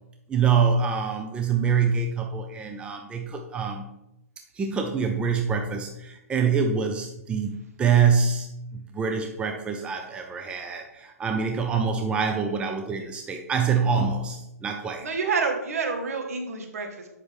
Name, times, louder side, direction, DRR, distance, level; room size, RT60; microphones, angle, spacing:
voice 1, 0.3-3.9 4.6-15.0, right 6 dB, 10° right, 3 dB, 0.6 m, -25 dB
voice 2, 15.0-17.1, right 4 dB, 65° right, 3 dB, 1.6 m, -28 dB
7.8 x 5.7 x 3.5 m, 0.86 s
figure-of-eight pair, 125°, 9 cm